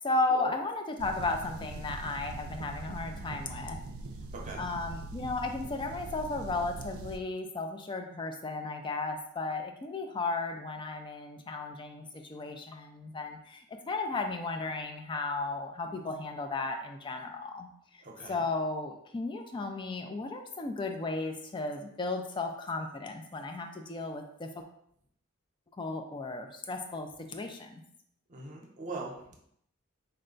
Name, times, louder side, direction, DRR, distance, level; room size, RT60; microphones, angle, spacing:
voice 1, 0.0-3.8 4.6-17.7 18.3-24.6 25.8-27.8, left 3 dB, 25° left, 4 dB, 0.4 m, -34 dB
sound 1, 1.0-7.2, right 2 dB, 90° right, 0.4 m, -42 dB
voice 2, 18.0-18.4 28.3-29.4, right 3 dB, 35° right, -1 dB, 0.8 m, -41 dB
4.4 x 2.2 x 3.8 m, 0.70 s
head